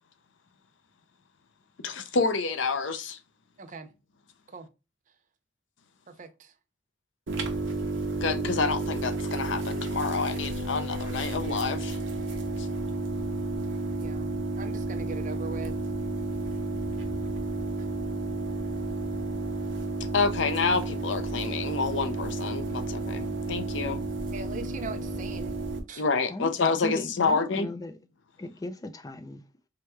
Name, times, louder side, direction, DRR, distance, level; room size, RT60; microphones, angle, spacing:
voice 1, 1.8-3.2 8.2-12.0 12.6-12.7 20.1-24.0 26.0-27.7, left 4 dB, 75° left, 0.6 m, -28 dB
voice 2, 3.6-3.9 4.5-4.7 6.1-6.5 14.0-14.3 14.6-15.8 24.3-25.5 25.9-26.0, right 4 dB, 40° right, 0.5 m, -40 dB
sound 1, 7.3-25.8, right 2 dB, 75° right, 0.8 m, -32 dB
voice 3, 26.8-28.0 28.4-29.4, left 1 dB, 20° left, 0.4 m, -37 dB
4.7 x 2.2 x 3.1 m
head